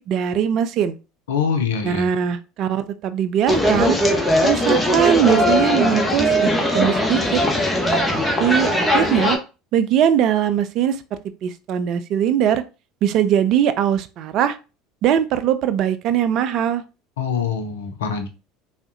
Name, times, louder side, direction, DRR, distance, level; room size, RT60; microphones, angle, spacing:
voice 1, 0.1-1.0 1.8-4.0 4.4-6.5 6.7-7.4 8.1-9.4 9.7-11.0 11.4-12.6 13.0-14.6 15.0-16.8, right 9 dB, 55° right, 11 dB, 0.3 m, -20 dB
voice 2, 1.3-2.1 17.2-18.3, left 6 dB, 75° left, 6 dB, 0.5 m, -24 dB
sound 1, 3.5-9.4, equal, 10° left, 0.8 m, -19 dB
3.4 x 2.1 x 2.6 m, 0.30 s
hypercardioid pair, 70°, 0 cm